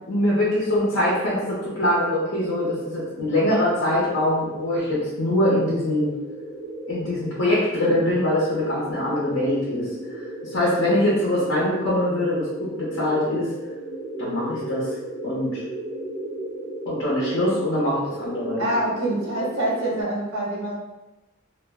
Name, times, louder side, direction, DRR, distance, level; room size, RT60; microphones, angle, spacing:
voice 1, 0.1-6.1 6.9-9.9 10.4-13.5 14.2-14.9 15.2-15.6 16.9-18.6, left 1 dB, 65° left, -7 dB, 0.8 m, -23 dB
sound 1, 1.0-20.0, right 1 dB, 55° right, 1.0 m, -35 dB
voice 2, 18.6-20.7, right 1 dB, 90° right, -4 dB, 1.0 m, -25 dB
2.4 x 2.1 x 3.5 m, 1.0 s
head